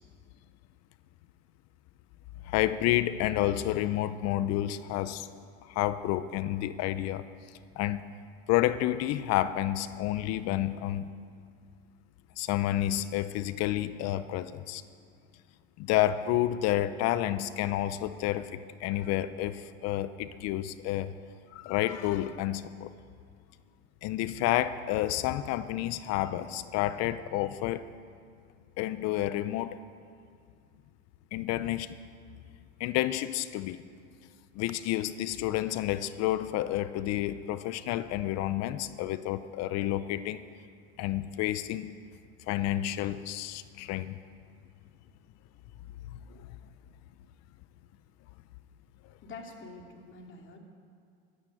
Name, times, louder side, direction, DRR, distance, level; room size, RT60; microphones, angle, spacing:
voice 1, 2.4-5.3 5.7-7.2 7.8-8.0 8.5-11.1 12.4-14.8 15.8-21.1 21.5-22.9 24.0-27.9 28.8-29.8 31.3-32.0 32.8-33.8 34.5-40.4 41.0-41.9 42.5-44.2, left 13 dB, 55° left, 14 dB, 0.7 m, -30 dB
voice 2, 49.2-50.6, left 3 dB, 40° left, 1 dB, 2.8 m, -46 dB
13.5 x 10.0 x 9.1 m, 2.3 s
supercardioid pair, 105°, 31 cm